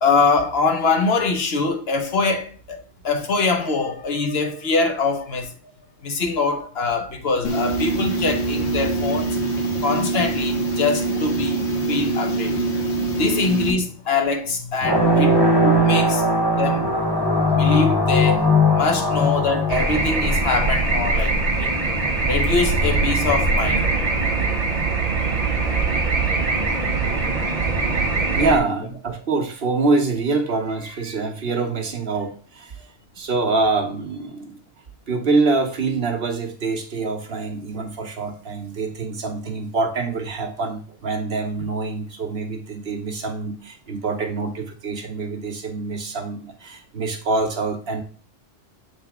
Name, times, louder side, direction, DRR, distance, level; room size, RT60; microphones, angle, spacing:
voice 1, 0.0-2.8 3.0-5.5 6.0-9.4 9.8-11.6 11.9-12.6 13.2-15.4 15.6-16.2 16.5-16.9 17.5-18.4 18.8-21.7 22.3-23.9 27.8-28.0, left 4 dB, 70° left, 1.2 m, -23 dB
sound 1, 7.4-13.7, right 2 dB, 90° left, 1.5 m, -24 dB
sound 2, 14.8-21.0, left 1 dB, 25° left, 1.1 m, -19 dB
sound 3, 19.7-28.6, right 3 dB, 35° right, 1.1 m, -22 dB
voice 2, 28.3-32.9 33.2-34.6 35.1-48.0, right 3 dB, 65° right, 1.3 m, -25 dB
7.4 x 4.0 x 3.6 m
omnidirectional pair, 1.1 m